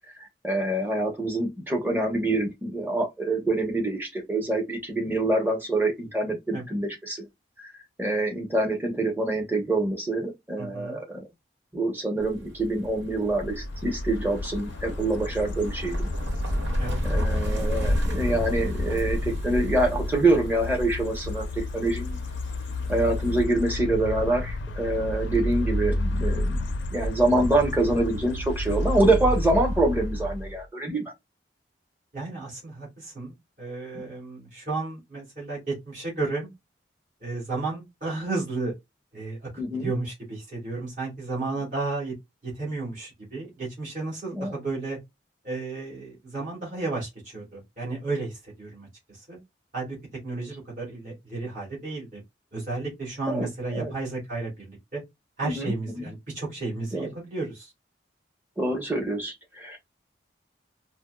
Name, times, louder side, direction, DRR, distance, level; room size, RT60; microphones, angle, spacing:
voice 1, 0.4-7.2 7.6-7.7 8.0-11.2 11.7-16.1 17.0-22.2 22.9-26.6 26.9-31.0 39.6-39.9 44.3-44.5 53.3-53.9 55.4-56.0 56.9-57.1 58.6-59.8, right 2 dB, 10° right, 0.9 m, -26 dB
voice 2, 10.6-11.0 16.8-17.2 32.1-36.5 37.2-38.7 39.1-42.1 42.4-45.0 45.4-49.4 49.7-49.9 50.2-52.2 52.5-55.0 55.4-57.7, right 3 dB, 45° right, 2.1 m, -33 dB
sound 1, 12.2-23.4, left 1 dB, 85° right, 1.3 m, -31 dB
sound 2, 13.0-30.6, left 1 dB, 85° left, 0.5 m, -31 dB
4.3 x 2.2 x 2.2 m
head